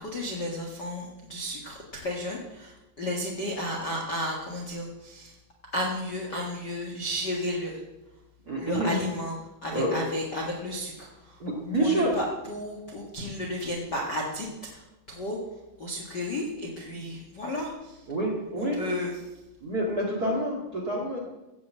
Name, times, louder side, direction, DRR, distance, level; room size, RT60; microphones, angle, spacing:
voice 1, 0.0-5.3 5.7-7.8 8.6-9.4 9.6-11.4 11.8-15.4 15.8-18.0 18.6-19.2, left 1 dB, 65° left, -2 dB, 1.0 m, -33 dB
voice 2, 8.4-9.0 9.7-10.0 11.4-12.1 16.9-17.0 18.1-18.9 19.6-21.2, right 1 dB, 35° right, -1 dB, 1.6 m, -28 dB
16.0 x 6.8 x 7.6 m, 1.0 s
omnidirectional pair, 4.9 m